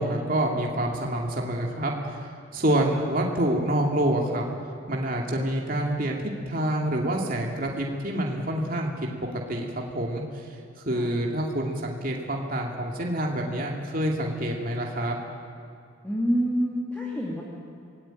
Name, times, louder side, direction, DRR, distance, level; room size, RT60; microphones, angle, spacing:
voice 1, 0.0-1.9 2.5-4.4 4.9-8.9 9.5-10.4 10.9-15.2, right 1 dB, 45° right, 0 dB, 2.6 m, -27 dB
voice 2, 16.0-17.4, equal, 10° left, -4 dB, 2.6 m, -27 dB
27.0 x 19.0 x 9.1 m, 2.4 s
head